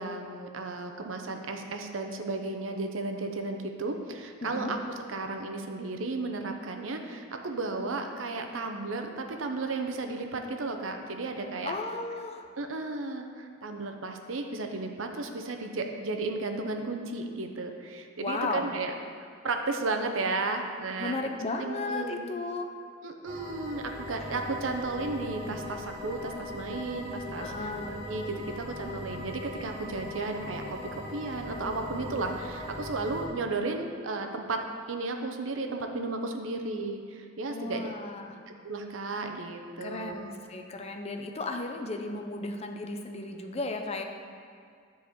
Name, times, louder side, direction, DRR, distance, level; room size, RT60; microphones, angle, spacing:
voice 1, 0.0-4.8 5.1-11.7 12.6-18.9 19.4-21.3 21.6-22.2 23.0-30.8 31.1-34.6 34.9-37.9 38.6-40.3, right 3 dB, 90° right, 4 dB, 0.8 m, -34 dB
voice 2, 4.4-4.7 11.6-12.5 18.2-18.7 21.0-22.7 27.4-28.0 37.5-38.3 39.8-44.0, left 3 dB, 35° left, 3 dB, 0.7 m, -35 dB
sound 1, 23.2-33.3, left 1 dB, 30° right, 2.0 m, -40 dB
9.4 x 4.0 x 6.5 m, 2.2 s
head